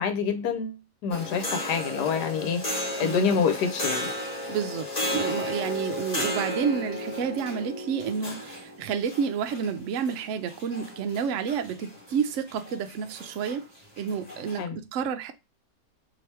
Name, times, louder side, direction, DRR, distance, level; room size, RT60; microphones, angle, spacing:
voice 1, 0.0-4.1 14.6-14.8, left 6 dB, 75° left, 1.3 m, -27 dB
sound 1, 1.1-14.6, left 1 dB, 25° left, 1.4 m, -34 dB
voice 2, 3.0-3.4 4.5-4.9 5.1-13.6 14.0-15.3, right 7 dB, 75° right, 0.7 m, -30 dB
3.0 x 2.9 x 3.3 m
omnidirectional pair, 1.8 m